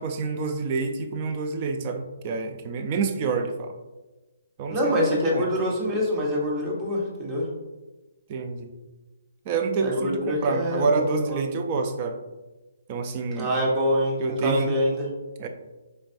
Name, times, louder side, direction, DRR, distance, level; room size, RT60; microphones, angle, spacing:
voice 1, 0.0-3.8 4.6-5.1 5.3-5.5 8.3-8.7 9.5-12.2 12.9-13.5 14.2-14.7 15.4-15.5, right 4 dB, 35° right, 6 dB, 0.4 m, -27 dB
voice 2, 4.7-7.5 9.8-11.4 13.3-15.1, equal, 20° right, -3 dB, 1.1 m, -25 dB
4.3 x 3.2 x 2.5 m, 1.1 s
figure-of-eight pair, 135°, 0 cm